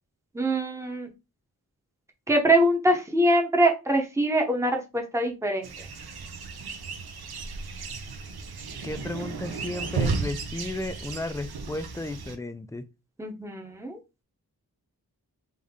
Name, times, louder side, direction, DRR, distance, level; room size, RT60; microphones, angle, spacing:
voice 1, 0.3-1.1 2.3-5.7 13.2-14.0, right 1 dB, 10° right, 0.8 m, -23 dB
sound 1, 5.6-12.4, right 4 dB, 80° right, 0.6 m, -34 dB
voice 2, 8.8-12.9, left 2 dB, 10° left, 0.4 m, -34 dB
3.5 x 2.6 x 3.6 m
wide cardioid pair, 75°, 38 cm